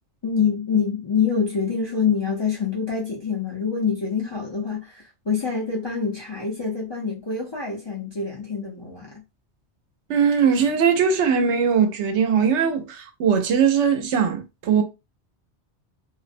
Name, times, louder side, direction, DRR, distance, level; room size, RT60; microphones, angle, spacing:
voice 1, 0.2-9.2, left 6 dB, 35° left, 0.4 m, -25 dB
voice 2, 10.1-14.8, right 6 dB, 85° right, 0.9 m, -20 dB
2.5 x 2.0 x 2.5 m
omnidirectional pair, 1.1 m